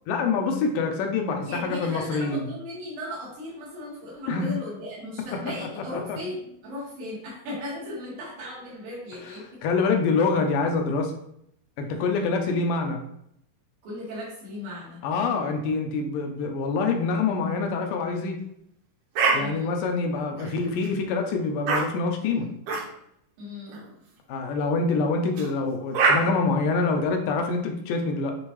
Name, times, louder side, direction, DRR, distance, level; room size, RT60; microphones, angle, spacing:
voice 1, 0.1-2.5 4.3-4.5 5.8-6.2 9.6-11.1 11.8-13.0 15.0-18.4 19.3-22.5 24.3-28.3, left 4 dB, 80° left, 3 dB, 2.3 m, -25 dB
voice 2, 1.5-9.6 13.8-15.0 15.3-15.5 19.4-19.7 23.4-23.8, left 1 dB, 85° right, -8 dB, 3.8 m, -37 dB
sound 1, 19.2-19.4 20.3-20.9 21.7-21.8 22.7-22.8 23.7-23.9 25.4-25.5 25.9-26.2, right 4 dB, 70° right, 2.4 m, -23 dB
9.4 x 3.5 x 3.2 m, 0.72 s
omnidirectional pair, 3.9 m